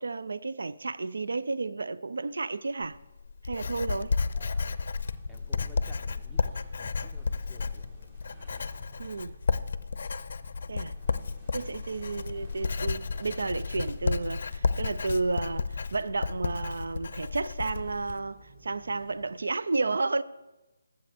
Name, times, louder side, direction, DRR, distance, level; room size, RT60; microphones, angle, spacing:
voice 1, 0.0-3.0 3.4-4.1 9.0-9.3 10.7-10.9 11.5-20.2, right 3 dB, 75° right, 0.4 m, -32 dB
Writing, 2.8-18.2, left 4 dB, 55° left, 0.5 m, -32 dB
sound 1, 3.8-19.5, right 2 dB, 20° right, 1.9 m, -55 dB
voice 2, 4.3-4.8 5.3-7.9 11.6-11.8, equal, ahead, 0.8 m, -54 dB
14.5 x 7.6 x 3.5 m
figure-of-eight pair, 160°, 0 cm